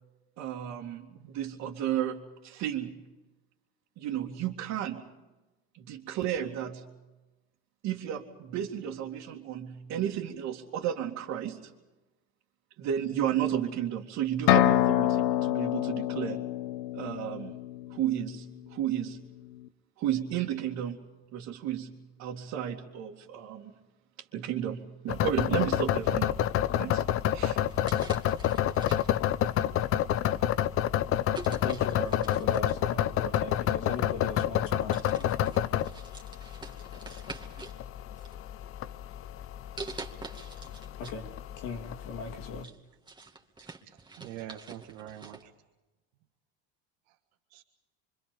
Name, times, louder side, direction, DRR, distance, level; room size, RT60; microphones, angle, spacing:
voice 1, 0.4-2.9 4.0-5.0 5.7-6.9 7.8-11.7 12.8-16.4 16.9-17.6 17.9-19.3 20.0-21.0 21.3-23.7 24.3-26.4 26.8-27.0 27.3-27.6, right 10 dB, 60° right, -3 dB, 2.6 m, -33 dB
sound 1, 14.5-18.2, left 13 dB, 90° left, 1.1 m, -26 dB
sound 2, 25.1-42.6, left 11 dB, 45° left, 0.8 m, -29 dB
sound 3, 27.7-29.3 30.1-30.3 31.3-32.9 34.0-34.1 34.5-34.7 34.9-37.8 38.2-38.9 39.8-41.2 41.5-41.6 42.1-45.5, right 3 dB, 15° right, 2.4 m, -46 dB
voice 2, 31.3-35.3 41.0-41.3 41.6-42.7, left 4 dB, 70° left, 3 dB, 3.0 m, -39 dB
voice 3, 43.9-45.5 47.5-47.6, right 12 dB, 90° right, 3 dB, 1.7 m, -44 dB
26.5 x 25.0 x 5.3 m, 1.1 s
supercardioid pair, 125°, 31 cm